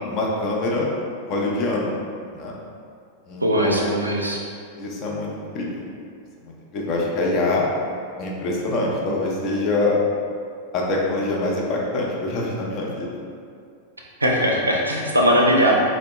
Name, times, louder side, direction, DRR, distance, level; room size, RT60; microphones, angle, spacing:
voice 1, 0.1-0.9 1.3-1.9 2.3-2.5 3.3-3.9 4.8-5.8 6.4-7.7 8.2-10.0 10.7-13.2, left 2 dB, 35° left, -3 dB, 0.6 m, -25 dB
voice 2, 3.4-4.4 14.2-15.8, equal, 80° right, -1 dB, 0.4 m, -19 dB
3.6 x 2.1 x 2.9 m, 2.3 s
figure-of-eight pair, 90°, 0 cm